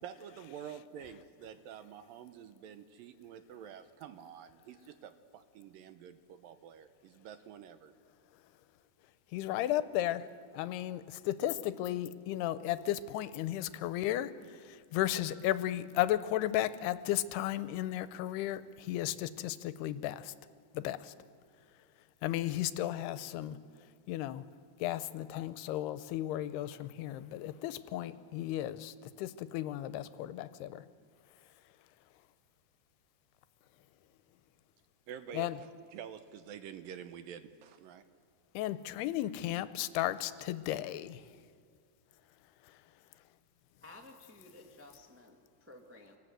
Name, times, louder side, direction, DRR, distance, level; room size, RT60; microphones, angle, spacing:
voice 1, 0.0-7.9 35.1-38.0, right 8 dB, 75° right, 10 dB, 2.3 m, -48 dB
voice 2, 9.3-10.3 10.5-20.3 20.7-21.1 22.2-23.6 24.1-24.4 24.8-30.8 35.3-35.6 38.5-41.2 42.6-42.8, left 13 dB, 85° left, 13 dB, 2.8 m, -34 dB
voice 3, 43.8-46.2, left 2 dB, 20° right, 1 dB, 0.3 m, -54 dB
27.0 x 18.5 x 7.9 m, 2.2 s
omnidirectional pair, 4.6 m